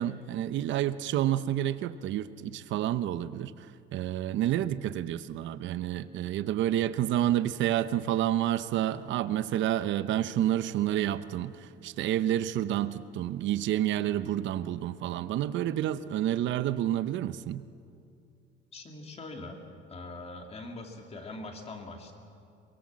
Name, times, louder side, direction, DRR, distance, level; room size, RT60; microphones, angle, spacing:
voice 1, 0.0-3.5 3.9-17.6, right 12 dB, 70° right, 13 dB, 0.8 m, -29 dB
voice 2, 18.7-19.6 19.9-22.1, left 2 dB, 30° left, 3 dB, 2.8 m, -42 dB
23.0 x 22.0 x 7.5 m, 2.5 s
cardioid pair, 145°, 20 cm